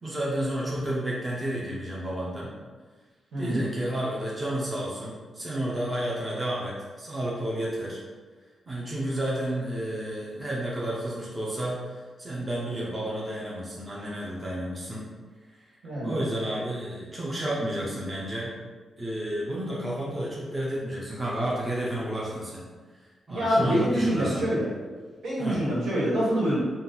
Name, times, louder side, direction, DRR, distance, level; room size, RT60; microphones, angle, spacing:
voice 1, 0.0-2.5 3.4-8.0 8.7-15.0 15.6-15.8 16.0-18.5 19.0-22.7 23.0-24.5 25.4-25.6, right 1 dB, 20° right, -5 dB, 0.6 m, -31 dB
voice 2, 3.3-3.7 15.8-16.1 23.3-24.7 25.2-26.6, equal, 75° right, -6 dB, 1.5 m, -25 dB
4.0 x 2.3 x 3.9 m, 1.4 s
wide cardioid pair, 150°, 0 cm